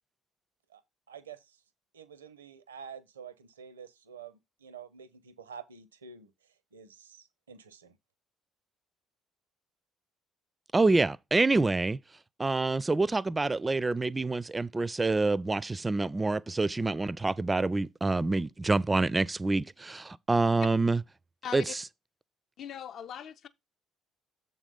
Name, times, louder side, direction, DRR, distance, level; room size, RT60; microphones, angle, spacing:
voice 1, 1.1-1.6 1.9-6.3 6.7-7.9, right 7 dB, 80° right, 0.6 m, -48 dB
voice 2, 10.7-12.0 12.4-21.0 21.5-21.8, right 3 dB, 20° right, 0.4 m, -27 dB
voice 3, 22.6-23.5, left 9 dB, 50° left, 0.5 m, -40 dB
7.2 x 4.0 x 5.2 m
figure-of-eight pair, 50°, 0 cm